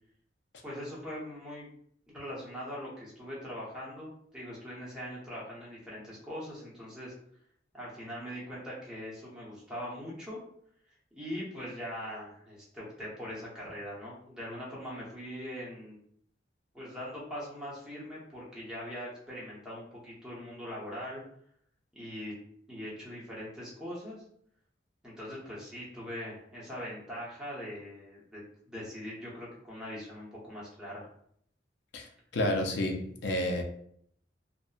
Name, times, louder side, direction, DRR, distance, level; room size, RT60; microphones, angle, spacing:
voice 1, 0.6-1.7 2.1-7.1 7.7-10.4 11.1-16.0 16.7-21.2 21.9-22.3 22.7-24.2 25.0-31.1, equal, 5° right, 0.8 m, -41 dB
voice 2, 32.3-33.6, left 1 dB, 70° left, 0.5 m, -30 dB
2.6 x 2.1 x 2.3 m
head